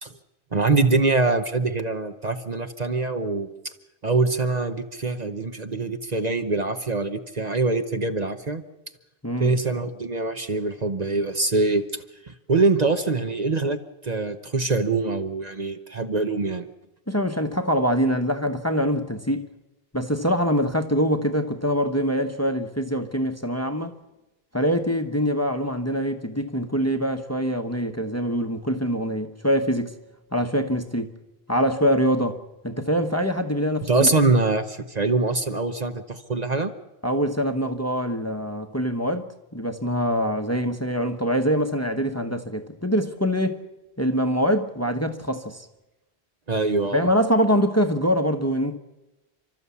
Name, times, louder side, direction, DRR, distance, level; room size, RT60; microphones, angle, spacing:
voice 1, 0.5-3.5 4.0-8.6 9.4-11.8 12.3-13.8 14.0-16.7 33.9-36.7 46.5-47.0, right 3 dB, 40° right, 1.1 m, -24 dB
voice 2, 17.1-19.5 19.9-23.9 24.5-29.9 30.3-31.1 31.5-34.1 37.0-43.6 44.0-45.7 46.9-48.8, equal, 15° left, 1.0 m, -24 dB
30.0 x 12.5 x 8.4 m
omnidirectional pair, 1.1 m